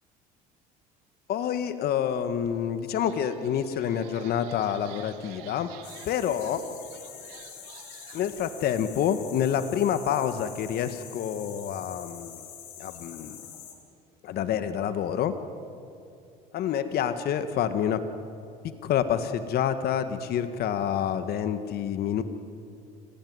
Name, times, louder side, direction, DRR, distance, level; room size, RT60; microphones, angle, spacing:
voice 1, 1.3-5.7 6.1-6.6 8.1-12.4 12.8-13.4 14.2-15.3 16.5-18.0 18.6-22.2, left 9 dB, 55° left, 10 dB, 1.5 m, -28 dB
sound 1, 2.4-2.5 2.9-8.3, right 11 dB, 85° right, 2.0 m, -50 dB
sound 2, 5.8-13.7, left 9 dB, 80° left, 4.0 m, -45 dB
30.0 x 15.5 x 9.5 m, 2.6 s
supercardioid pair, 85°, 19 cm